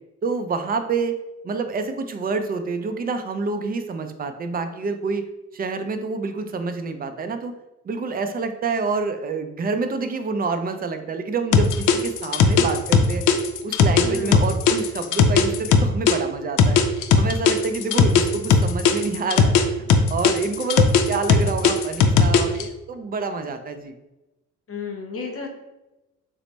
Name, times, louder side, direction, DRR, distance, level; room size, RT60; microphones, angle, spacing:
voice 1, 0.2-1.1 1.4-5.3 5.5-7.5 7.8-13.2 13.6-16.8 17.2-23.9, right 4 dB, 30° right, 8 dB, 0.4 m, -27 dB
sound 1, 11.5-16.2 16.6-19.6 19.9-22.6, left 6 dB, 75° left, 0.5 m, -17 dB
voice 2, 14.0-14.4 24.7-25.5, left 4 dB, 50° left, 2 dB, 0.8 m, -32 dB
3.2 x 2.0 x 4.0 m, 1.0 s
cardioid pair, 90°, 30 cm